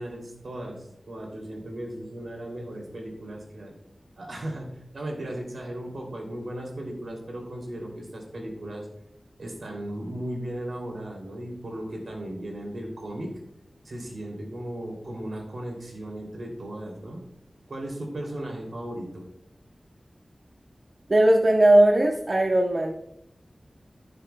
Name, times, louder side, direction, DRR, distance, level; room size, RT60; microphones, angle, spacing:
voice 1, 0.0-3.7 4.2-8.9 9.4-13.3 13.8-17.2 17.7-19.3, right 1 dB, 80° right, 0 dB, 2.9 m, -36 dB
voice 2, 21.1-23.0, right 1 dB, 50° right, 0 dB, 0.9 m, -18 dB
15.5 x 6.8 x 2.3 m, 0.78 s
wide cardioid pair, 70°, 0 cm